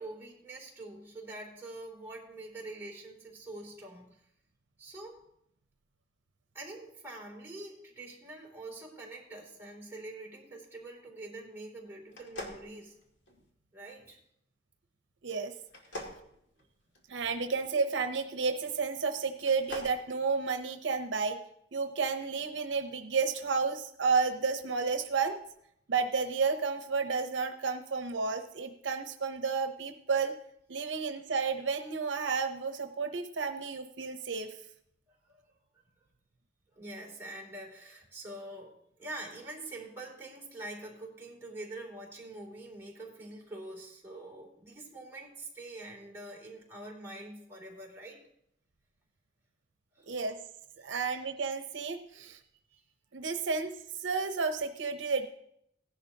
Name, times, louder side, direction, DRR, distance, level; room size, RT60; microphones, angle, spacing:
voice 1, 0.0-4.2 4.8-5.2 6.5-13.0 13.7-14.2 15.9-16.0 35.1-35.4 36.7-48.2 49.9-50.2, right 2 dB, 15° right, -3 dB, 2.7 m, -45 dB
sound 1, 12.1-13.5 15.7-17.3 19.3-20.0, left 1 dB, 80° left, 2.2 m, -44 dB
voice 2, 15.2-15.5 17.1-21.4 21.7-25.4 25.9-30.4 30.7-34.6 50.1-50.4 50.8-52.4 53.1-53.7 54.0-55.3, right 5 dB, 80° right, 7 dB, 0.7 m, -31 dB
16.5 x 11.0 x 2.8 m, 0.74 s
head